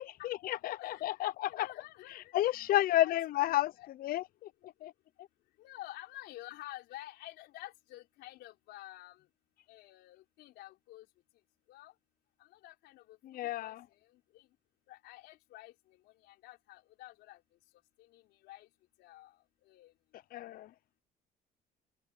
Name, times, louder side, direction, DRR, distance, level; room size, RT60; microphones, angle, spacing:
voice 1, 0.0-1.7 2.3-3.7 4.0-4.9 13.2-13.8 20.3-20.7, left 14 dB, 60° left, 0.5 m, -31 dB
voice 2, 0.8-2.7 3.0-3.1 3.4-3.6 5.6-9.2 9.7-11.1 11.7-11.9 12.4-13.7 14.1-14.5 14.9-15.7 16.0-17.4 18.0-18.7 19.0-19.3 19.6-19.9, left 16 dB, 85° left, 4.2 m, -50 dB
cardioid pair, 110°, 17 cm